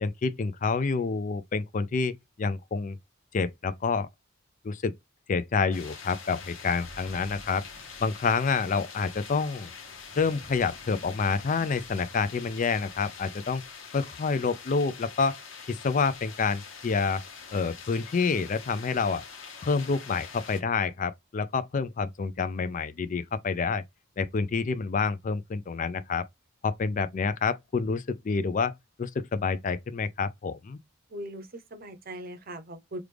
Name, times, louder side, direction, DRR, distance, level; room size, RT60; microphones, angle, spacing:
voice 1, 0.0-3.0 3.3-4.1 4.6-4.9 5.3-7.7 8.0-9.7 10.2-13.6 13.9-15.4 15.7-17.2 17.5-19.2 19.6-23.8 24.2-26.2 26.6-30.8, left 5 dB, 40° left, 0.4 m, -28 dB
sound 1, 5.7-20.6, left 5 dB, 75° left, 1.1 m, -45 dB
voice 2, 31.1-33.0, right 1 dB, 45° right, 0.7 m, -40 dB
3.2 x 2.4 x 3.3 m
head